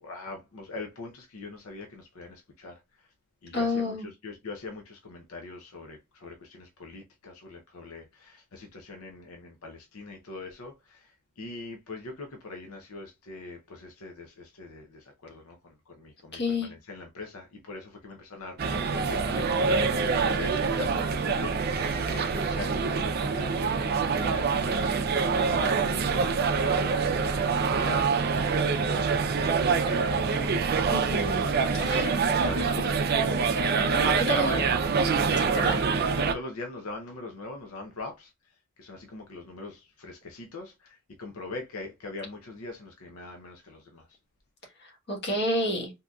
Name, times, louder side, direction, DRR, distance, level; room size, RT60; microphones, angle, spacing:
voice 1, 0.0-2.7 3.4-29.0 29.8-30.8 31.8-34.7 35.5-35.8 36.3-38.3 38.8-44.1, left 3 dB, 85° left, 0.7 m, -42 dB
voice 2, 3.5-4.1 16.3-16.7 30.9-31.5 31.7-32.1 34.3-34.5 35.4-35.8 44.8-45.9, left 1 dB, 50° left, 1.2 m, -29 dB
sound 1, 18.6-36.3, right 5 dB, 45° right, 0.4 m, -25 dB
3.7 x 2.7 x 2.3 m
head